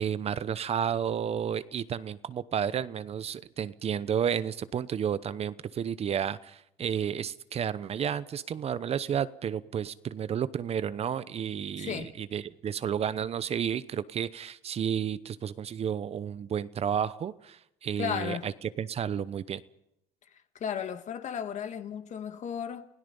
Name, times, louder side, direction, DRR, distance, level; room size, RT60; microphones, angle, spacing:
voice 1, 0.0-18.5 18.8-19.6, right 8 dB, 40° right, 0.8 m, -31 dB
voice 2, 11.8-12.1 18.0-18.5 20.5-22.9, left 8 dB, 50° left, 1.7 m, -34 dB
29.5 x 17.0 x 5.5 m
supercardioid pair, 90°, 15 cm